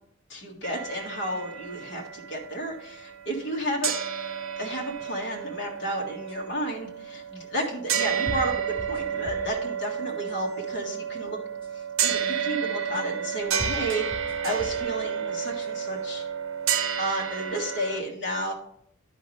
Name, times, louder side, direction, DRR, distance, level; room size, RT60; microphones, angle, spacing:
voice 1, 0.3-3.9 4.6-11.4 11.7-14.0 14.4-16.3 17.0-18.5, equal, 55° left, -1 dB, 1.7 m, -32 dB
sound 1, 0.6-3.6 3.8-18.0, right 8 dB, 70° right, 0.7 m, -31 dB
sound 2, 6.3-6.4 7.6-7.7 8.3-9.6 10.1-10.6 11.6-11.7 12.9-13.0 13.6-14.9 15.4-16.0, equal, 25° left, 1.6 m, -39 dB
11.0 x 5.2 x 3.2 m, 0.69 s
head